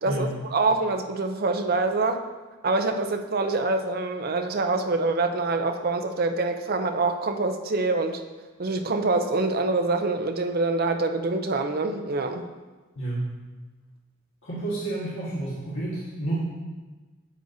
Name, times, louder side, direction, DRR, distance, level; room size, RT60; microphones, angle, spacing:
voice 1, 0.0-2.2 2.6-8.2 8.6-12.5, right 3 dB, 45° right, 6 dB, 0.6 m, -25 dB
voice 2, 12.9-13.3 14.4-16.4, right 2 dB, 70° left, -9 dB, 1.7 m, -30 dB
9.9 x 7.6 x 2.7 m, 1.3 s
head